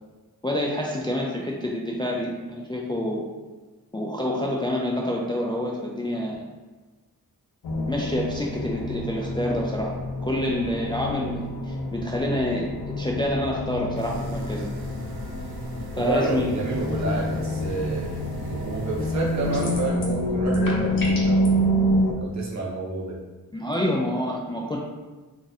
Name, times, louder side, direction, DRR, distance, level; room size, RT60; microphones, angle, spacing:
voice 1, 0.4-3.3 3.9-6.5 7.9-9.9 10.2-12.7 13.0-14.7 16.0-16.5 23.5-24.8, left 1 dB, 15° left, -2 dB, 0.3 m, -27 dB
sound 1, 7.6-22.1, equal, 80° left, 0.6 m, -27 dB
sound 2, 13.9-19.8, right 2 dB, 80° right, 0.6 m, -39 dB
voice 2, 16.0-18.1 18.4-21.7 22.2-23.2, right 3 dB, 50° right, -3 dB, 0.8 m, -30 dB
sound 3, 19.5-20.2 20.5-21.5, left 2 dB, 60° left, 0.9 m, -35 dB
2.6 x 2.5 x 3.9 m, 1.2 s
wide cardioid pair, 120°, 37 cm